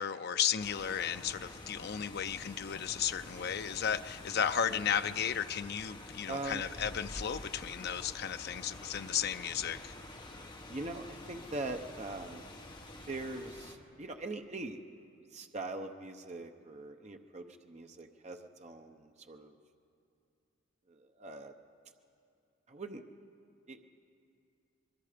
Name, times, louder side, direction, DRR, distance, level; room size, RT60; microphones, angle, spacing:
voice 1, 0.0-9.9, left 8 dB, 50° left, 11 dB, 0.5 m, -34 dB
sound 1, 0.6-13.8, left 2 dB, 20° left, 1.3 m, -48 dB
voice 2, 6.3-6.6 10.7-12.4 13.1-14.8 15.3-19.5 20.9-21.5 22.7-23.0 23.7-23.8, right 2 dB, 35° right, 5 dB, 0.8 m, -42 dB
24.5 x 21.5 x 5.1 m, 2.5 s
head